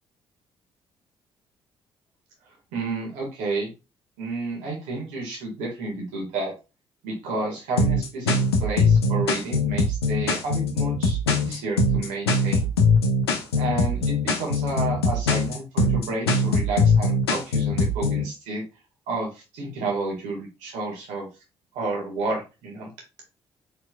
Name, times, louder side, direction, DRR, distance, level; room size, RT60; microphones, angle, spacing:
voice 1, 2.7-3.7 4.2-6.5 7.0-8.3 8.6-12.7 13.5-18.6 19.1-21.3 21.7-22.9, right 3 dB, 65° right, 0 dB, 2.0 m, -31 dB
sound 1, 7.8-18.2, left 3 dB, 80° left, 0.7 m, -21 dB
4.5 x 4.2 x 2.4 m, 0.28 s
figure-of-eight pair, 45°, 13 cm